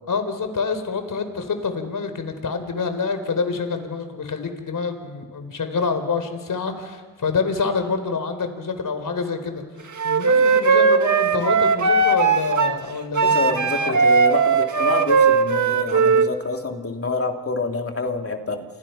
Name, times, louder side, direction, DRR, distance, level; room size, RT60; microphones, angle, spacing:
voice 1, 0.1-9.6 10.0-14.0, left 5 dB, 60° left, 8 dB, 4.3 m, -27 dB
Wind instrument woodwind instrument, 10.0-12.8 13.2-16.3, right 5 dB, 55° right, 1.8 m, -18 dB
voice 2, 13.2-18.6, left 3 dB, 40° left, 3 dB, 3.2 m, -27 dB
29.5 x 27.0 x 5.9 m, 1.4 s
cardioid pair, 60°, 36 cm